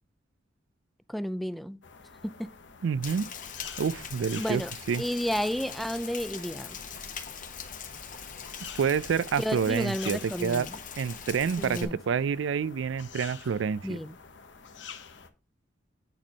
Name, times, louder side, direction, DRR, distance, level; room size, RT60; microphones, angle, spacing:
voice 1, 1.1-1.8 2.2-2.5 4.4-4.7 5.0-6.8 9.4-10.8 11.6-12.0 13.8-14.2, equal, ahead, 0.3 m, -32 dB
sound 1, 1.8-15.3, left 6 dB, 70° left, 1.0 m, -48 dB
voice 2, 2.8-3.3 3.8-4.6 4.9-5.0 8.8-10.7 11.0-14.0, right 6 dB, 80° right, 0.4 m, -28 dB
Rain, 3.0-11.8, left 7 dB, 45° left, 1.2 m, -41 dB
9.0 x 4.3 x 5.2 m
head